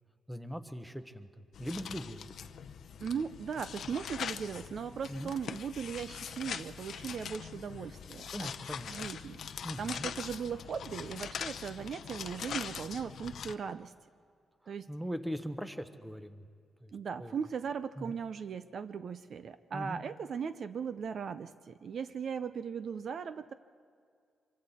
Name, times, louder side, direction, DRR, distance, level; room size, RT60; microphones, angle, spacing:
voice 1, 0.3-2.3 5.1-5.3 8.3-9.1 9.6-10.1 14.6-16.5 16.8-17.3 18.0-18.1 19.7-20.0, equal, 5° right, 10 dB, 0.9 m, -41 dB
sound 1, 1.5-13.5, left 8 dB, 60° left, 0.7 m, -42 dB
voice 2, 3.0-8.5 8.9-9.4 9.8-13.9 14.7-14.9 16.9-23.5, right 6 dB, 50° right, 12 dB, 0.5 m, -38 dB
25.5 x 24.0 x 4.2 m, 2.2 s
wide cardioid pair, 150°, 0 cm